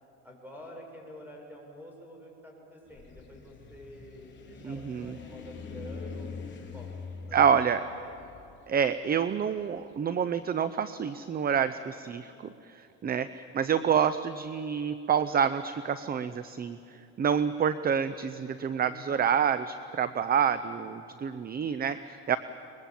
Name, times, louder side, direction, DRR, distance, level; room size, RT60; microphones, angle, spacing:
voice 1, 0.2-6.5 6.7-6.9 7.3-7.7 8.0-8.2 18.8-19.3, equal, 5° right, 0 dB, 7.0 m, -48 dB
sound 1, 2.8-10.0, left 5 dB, 35° left, 3.2 m, -44 dB
voice 2, 4.6-5.2 7.3-7.8 8.7-12.3 12.7-16.8 17.2-22.4, right 7 dB, 30° right, 13 dB, 0.6 m, -28 dB
23.5 x 21.5 x 7.6 m, 2.7 s
cardioid pair, 105°, 32 cm